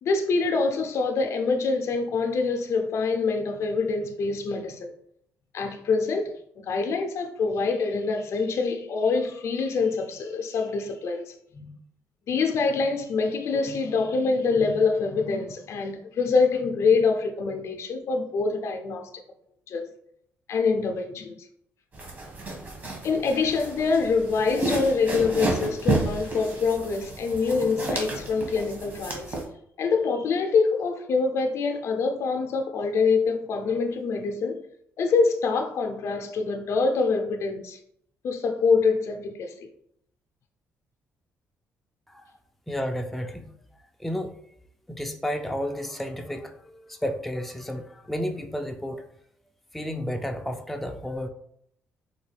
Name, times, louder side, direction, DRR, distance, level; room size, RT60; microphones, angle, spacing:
voice 1, 0.0-4.9 5.5-11.7 12.3-19.1 19.7-19.9 20.5-21.5 23.0-29.4 29.8-34.6 35.0-37.8 38.2-39.7, left 4 dB, 65° left, 0.5 m, -25 dB
sound 1, 21.9-29.4, right 2 dB, 40° right, 1.2 m, -31 dB
voice 2, 42.7-43.5 44.0-44.3 44.9-49.0 49.7-51.3, equal, 5° left, 0.4 m, -32 dB
3.9 x 2.2 x 3.3 m
cardioid pair, 80°, 5 cm